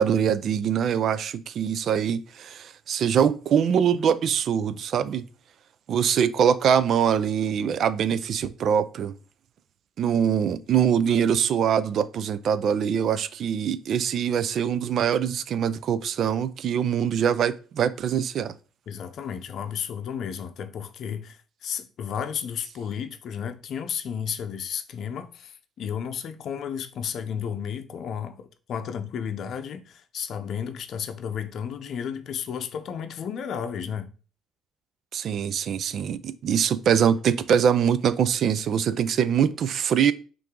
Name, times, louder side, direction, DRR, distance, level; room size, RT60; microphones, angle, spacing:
voice 1, 0.0-5.2 5.9-9.1 10.0-18.5 35.1-40.1, right 8 dB, 60° right, 0.4 m, -23 dB
voice 2, 18.9-34.1, left 8 dB, 60° left, 0.6 m, -33 dB
5.5 x 2.6 x 3.7 m
supercardioid pair, 70°, 0 cm